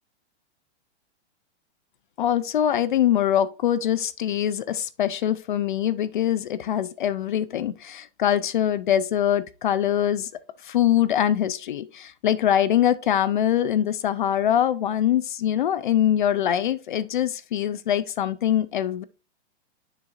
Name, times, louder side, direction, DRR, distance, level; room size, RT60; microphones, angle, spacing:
voice 1, 2.2-10.3 10.6-19.0, left 10 dB, 45° left, 0.4 m, -23 dB
7.0 x 6.6 x 2.5 m
hypercardioid pair, 165°, 34 cm